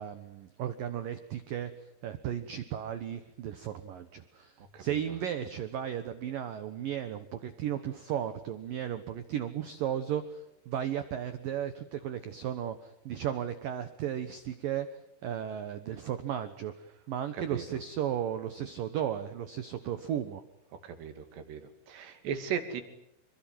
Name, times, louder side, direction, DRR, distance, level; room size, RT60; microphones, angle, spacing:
voice 1, 0.0-16.7 17.1-20.4, right 10 dB, 85° right, 11 dB, 1.9 m, -35 dB
voice 2, 20.8-21.6 21.9-22.8, right 8 dB, 60° right, 8 dB, 4.3 m, -36 dB
26.5 x 23.5 x 9.4 m, 0.81 s
omnidirectional pair, 6.0 m